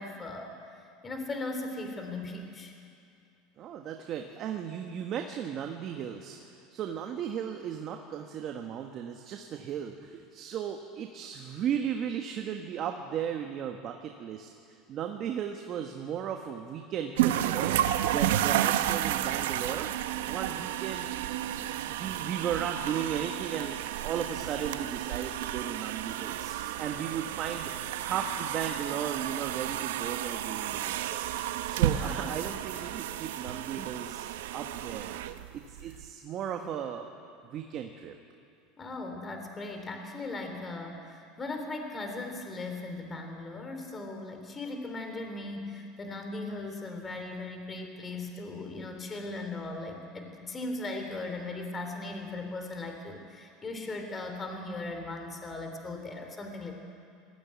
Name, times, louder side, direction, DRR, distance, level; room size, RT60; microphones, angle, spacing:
voice 1, 0.0-2.7 31.9-32.4 38.8-56.7, left 2 dB, 20° left, 4 dB, 2.9 m, -38 dB
voice 2, 3.6-14.5 14.9-19.9 20.2-21.1 21.5-27.7 28.0-31.3 31.7-34.3 34.5-35.2 35.5-37.1 37.5-38.1, right 8 dB, 45° right, 3 dB, 1.5 m, -36 dB
sound 1, 17.2-36.0, right 12 dB, 90° right, 0.8 m, -32 dB
20.0 x 15.5 x 9.6 m, 2.5 s
supercardioid pair, 120°, 0 cm